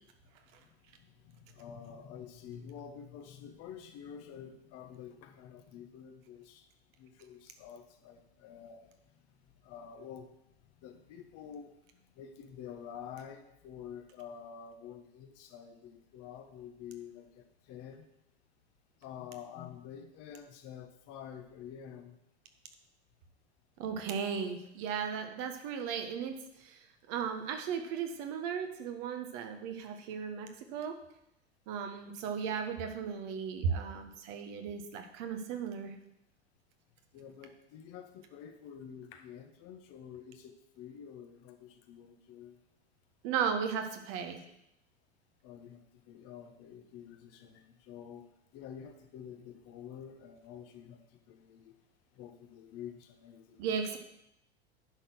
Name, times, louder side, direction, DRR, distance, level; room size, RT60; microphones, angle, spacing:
voice 1, 1.0-6.6 7.0-8.9 9.6-10.3 10.8-18.1 19.0-22.2 37.1-42.6 44.4-44.5 45.4-51.0 51.3-51.7 52.1-54.0, left 8 dB, 45° left, 6 dB, 1.3 m, -48 dB
voice 2, 23.8-26.8 27.1-31.0 31.7-35.9 43.2-44.4 53.6-54.0, right 7 dB, 50° right, 6 dB, 1.5 m, -36 dB
10.5 x 4.2 x 6.4 m, 0.80 s
hypercardioid pair, 95°, 33 cm